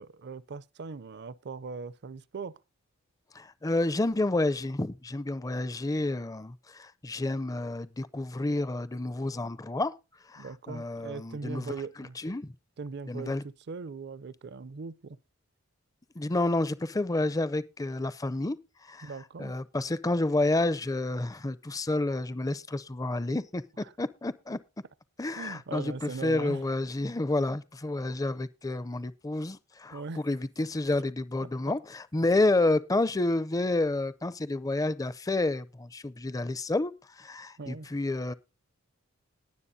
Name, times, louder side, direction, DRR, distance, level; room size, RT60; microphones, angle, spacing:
voice 1, 0.0-2.6 10.4-12.2 12.8-15.2 19.0-19.5 23.8-23.9 25.4-26.6 29.9-30.2 31.4-31.5 37.6-37.9, right 4 dB, 50° right, 0.5 m, -40 dB
voice 2, 3.3-9.9 10.3-11.7 12.0-12.5 13.1-13.4 16.2-18.6 18.9-19.1 19.4-24.6 25.2-38.3, left 2 dB, 15° left, 0.4 m, -30 dB
20.0 x 7.5 x 2.7 m
head